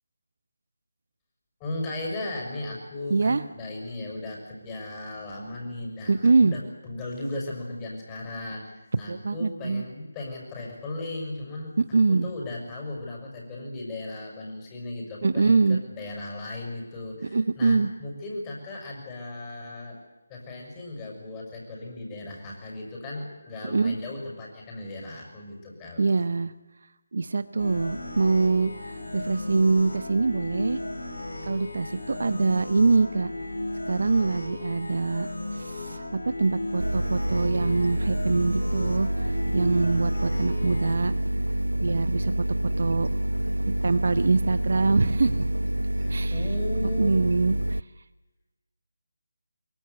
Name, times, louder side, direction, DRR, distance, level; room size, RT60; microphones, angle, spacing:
voice 1, 1.6-11.7 12.1-20.0 20.3-26.1 45.9-47.1, left 2 dB, 15° left, -1 dB, 6.5 m, -36 dB
voice 2, 3.1-3.4 6.1-6.6 9.1-9.8 11.8-12.3 15.2-15.8 17.2-17.9 23.6-24.0 26.0-26.5 27.1-28.7 29.1-30.8 31.5-33.3 33.9-41.1 41.8-43.1 43.7-45.5 46.1-46.4 47.0-47.8, right 3 dB, 55° right, 13 dB, 1.0 m, -24 dB
sound 1, 27.6-41.0, left 2 dB, 75° left, 7.0 m, -35 dB
sound 2, 36.8-47.8, right 1 dB, 80° right, 0.7 m, -27 dB
23.5 x 23.0 x 8.3 m, 1.1 s
figure-of-eight pair, 155°, 0 cm